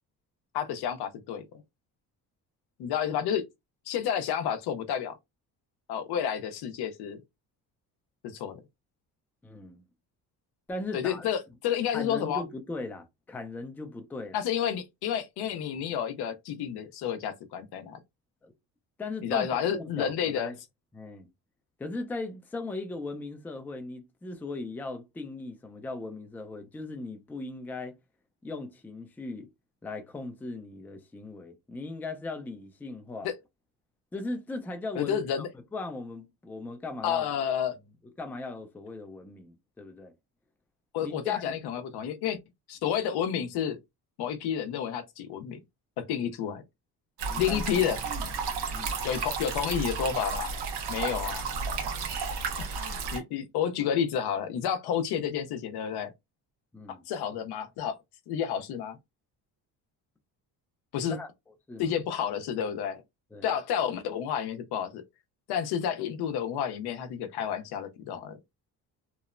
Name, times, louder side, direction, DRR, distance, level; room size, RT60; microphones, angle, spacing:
voice 1, 0.5-1.4 2.8-3.4 3.9-5.1 5.9-7.2 8.2-8.6 10.9-12.4 14.3-18.0 19.2-20.5 33.2-33.3 35.0-35.5 37.0-37.8 40.9-42.4 42.7-43.8 44.2-45.6 46.0-46.6 47.4-48.0 49.0-50.5 50.9-51.5 52.8-56.1 56.9-58.0 58.3-59.0 60.9-61.2 61.8-63.0 63.4-65.0 65.5-68.4, left 8 dB, 75° left, 0.6 m, -30 dB
voice 2, 9.4-9.8 10.7-11.3 11.9-14.4 18.4-18.5 19.0-20.5 20.9-21.3 21.8-28.0 28.4-29.5 29.8-33.3 34.1-35.5 35.7-37.3 38.2-40.1 41.0-41.5 47.3-47.6 48.7-49.0 56.7-57.0 61.1-61.9 63.3-63.5, left 2 dB, 5° left, 0.3 m, -38 dB
sound 1, 47.2-53.2, right 5 dB, 75° right, 0.9 m, -33 dB
2.9 x 2.0 x 2.4 m
cardioid pair, 120°, 39 cm